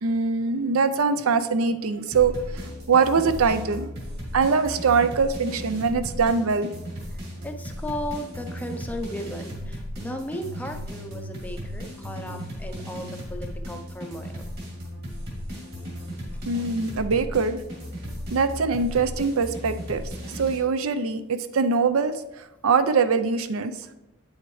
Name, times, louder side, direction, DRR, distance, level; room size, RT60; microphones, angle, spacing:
voice 1, 0.0-3.9 4.3-6.7 16.5-17.6 18.3-20.0 20.3-22.1 22.6-23.7, right 5 dB, 70° right, 11 dB, 0.5 m, -23 dB
sound 1, 2.1-20.6, equal, 45° right, 2.8 m, -36 dB
voice 2, 7.1-14.5 16.1-16.2, equal, 5° left, 5 dB, 0.5 m, -36 dB
8.7 x 7.1 x 3.2 m, 0.94 s
head